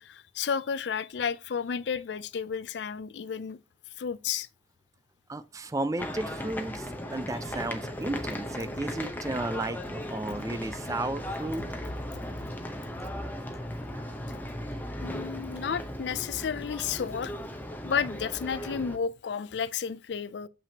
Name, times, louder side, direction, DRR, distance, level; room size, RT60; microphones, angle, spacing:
voice 1, 0.0-3.6 4.0-4.5 15.0-17.3 17.8-20.5, left 7 dB, 70° left, 0.4 m, -32 dB
voice 2, 5.3-11.6, right 2 dB, 20° right, 0.4 m, -34 dB
sound 1, 6.0-19.0, equal, 10° left, 0.8 m, -37 dB
7.0 x 5.8 x 2.8 m
head